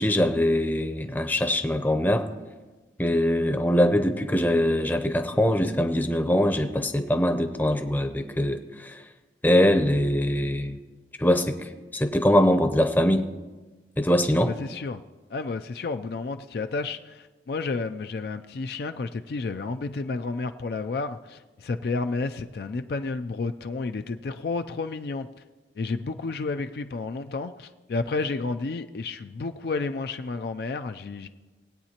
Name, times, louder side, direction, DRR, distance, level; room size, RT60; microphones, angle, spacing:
voice 1, 0.0-2.3 3.0-9.0 9.4-10.8 11.2-13.3 14.0-14.5, left 1 dB, 10° left, 7 dB, 0.6 m, -23 dB
voice 2, 14.4-15.0 15.3-25.3 25.8-31.3, left 3 dB, 55° left, 8 dB, 0.4 m, -31 dB
20.5 x 8.8 x 2.9 m, 1.2 s
head